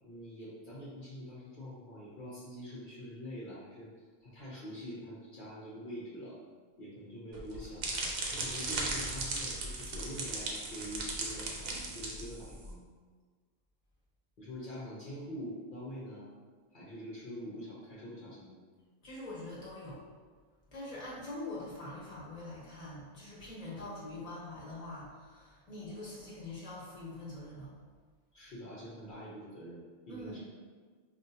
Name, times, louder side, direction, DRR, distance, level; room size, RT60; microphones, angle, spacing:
voice 1, 0.0-3.9 4.2-6.4 6.8-7.9 8.3-12.8 14.4-16.3 16.7-18.6 28.3-30.4, equal, 55° left, -7 dB, 0.8 m, -45 dB
sound 1, 7.3-12.7, right 2 dB, 70° right, 0.8 m, -37 dB
voice 2, 19.0-20.0 20.7-27.7 30.1-30.4, left 2 dB, 35° left, -7 dB, 1.3 m, -44 dB
5.1 x 2.2 x 2.7 m, 1.5 s
omnidirectional pair, 1.1 m